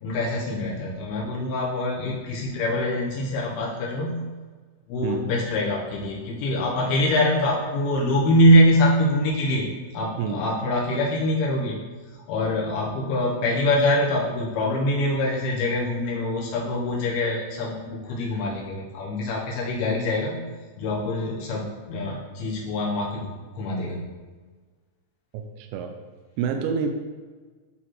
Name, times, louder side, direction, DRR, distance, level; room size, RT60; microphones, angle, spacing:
voice 1, 0.0-4.3 4.9-9.7 9.9-11.8 12.3-20.5 20.8-23.3 23.6-24.0, left 1 dB, 85° left, -4 dB, 2.2 m, -24 dB
voice 2, 25.3-25.9 26.4-26.9, right 6 dB, 90° right, 4 dB, 3.2 m, -27 dB
11.5 x 4.1 x 3.0 m, 1.4 s
omnidirectional pair, 5.7 m